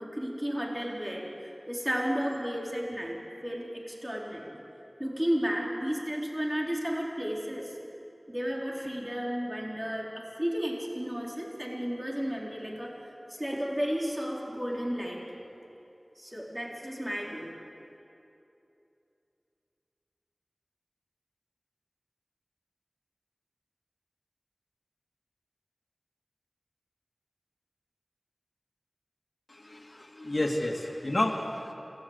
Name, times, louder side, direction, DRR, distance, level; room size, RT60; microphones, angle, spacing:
voice 1, 0.0-4.6 5.0-7.7 8.3-12.9 13.4-15.2 16.2-17.5, equal, 15° right, -2 dB, 3.9 m, -33 dB
voice 2, 29.5-31.7, left 1 dB, 60° left, 0 dB, 2.4 m, -31 dB
26.5 x 17.5 x 8.1 m, 2.8 s
wide cardioid pair, 40°, 0 cm